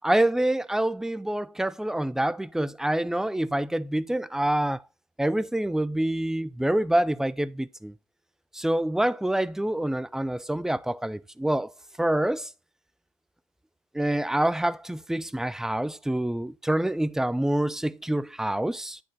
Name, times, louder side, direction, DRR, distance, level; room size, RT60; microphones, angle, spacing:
voice 1, 0.0-4.8 5.2-7.9 8.5-11.7 12.0-12.5 13.9-19.0, right 1 dB, 5° right, 0.3 m, -26 dB
8.2 x 4.7 x 3.9 m
figure-of-eight pair, 60°, 17 cm